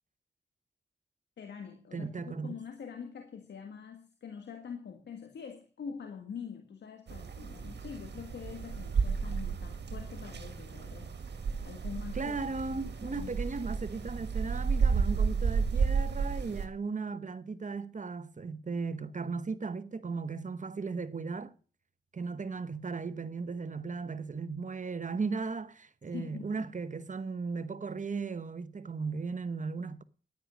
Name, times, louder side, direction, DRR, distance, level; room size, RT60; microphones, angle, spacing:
voice 1, 1.4-11.1 11.6-12.4 12.7-13.3 26.1-26.7, left 6 dB, 85° left, 1.6 m, -44 dB
voice 2, 1.9-2.6 12.1-21.5 22.1-30.0, right 4 dB, 45° right, 1.0 m, -36 dB
sound 1, 7.1-16.6, right 5 dB, 75° right, 1.6 m, -32 dB
10.5 x 10.0 x 6.3 m
cardioid pair, 45°, 18 cm